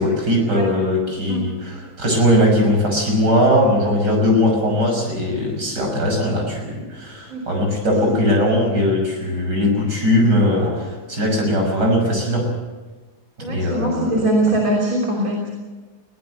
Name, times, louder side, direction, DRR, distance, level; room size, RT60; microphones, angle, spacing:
voice 1, 0.0-12.5 13.4-14.2, left 1 dB, 60° right, 1 dB, 6.6 m, -19 dB
voice 2, 13.4-15.5, right 1 dB, 45° right, -3 dB, 3.8 m, -21 dB
21.5 x 17.5 x 7.9 m, 1.3 s
omnidirectional pair, 2.1 m